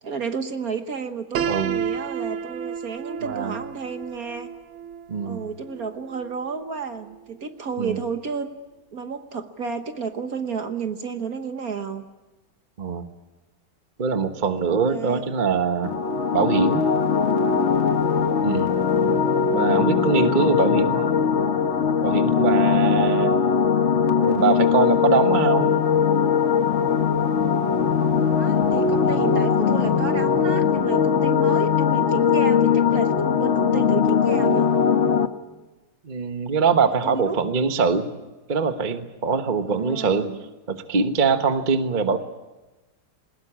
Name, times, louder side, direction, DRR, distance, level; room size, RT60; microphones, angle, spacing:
voice 1, 0.0-4.5 5.2-8.5 8.9-12.0 14.9-15.3 19.7-20.1 28.2-34.7 36.9-37.4 39.6-40.4, right 5 dB, 50° right, 8 dB, 1.5 m, -32 dB
Piano, 1.3-7.2, right 8 dB, 85° right, 1.8 m, -32 dB
voice 2, 1.4-1.8 3.2-3.5 5.1-5.5 7.8-8.0 12.8-13.1 14.0-16.0 16.3-16.9 18.4-18.7 19.5-21.1 22.0-23.3 24.2-25.7 36.0-38.1 38.5-40.3 40.7-42.2, right 5 dB, 30° right, 8 dB, 1.1 m, -23 dB
sound 1, 15.8-35.3, left 6 dB, 45° left, 1.1 m, -20 dB
21.0 x 20.0 x 8.7 m, 1.1 s
omnidirectional pair, 2.2 m